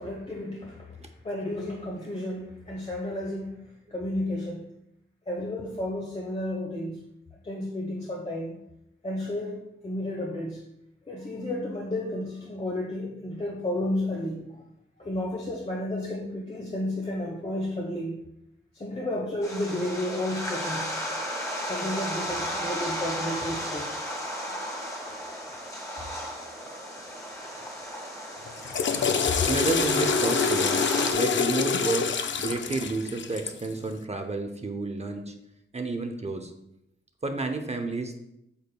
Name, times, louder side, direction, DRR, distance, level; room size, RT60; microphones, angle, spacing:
voice 1, 0.0-0.9 1.2-3.6 3.9-4.7 5.3-7.0 7.4-8.6 9.0-10.6 11.1-14.6 15.0-18.2 18.7-20.9 21.7-23.9, left 1 dB, 30° left, -2 dB, 1.0 m, -32 dB
sound 1, 19.4-31.1, equal, 15° left, 1.6 m, -34 dB
Water / Toilet flush, 28.5-33.7, left 5 dB, 60° left, 0.5 m, -26 dB
voice 2, 29.4-30.8 31.1-35.3 35.7-36.5 37.2-38.2, right 3 dB, 30° right, 6 dB, 0.6 m, -31 dB
8.2 x 6.4 x 2.2 m, 0.81 s
wide cardioid pair, 120°, 21 cm